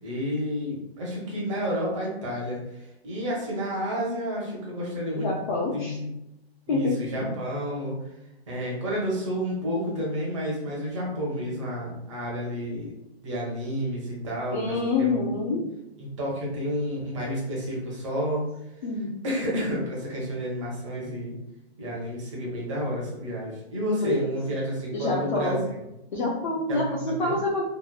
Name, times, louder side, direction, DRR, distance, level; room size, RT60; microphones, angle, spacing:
voice 1, 0.0-2.6 3.0-5.4 5.7-6.1 6.7-8.0 8.5-12.9 13.2-15.1 16.0-18.5 19.2-21.3 21.8-25.6 26.7-27.4, equal, 30° right, -4 dB, 0.7 m, -30 dB
voice 2, 5.2-6.0 6.7-7.0 14.5-15.7 18.8-19.1 24.1-24.3 24.9-25.6 26.1-27.6, left 3 dB, 45° left, -4 dB, 0.5 m, -27 dB
2.9 x 2.1 x 2.2 m, 0.87 s
hypercardioid pair, 165°, 33 cm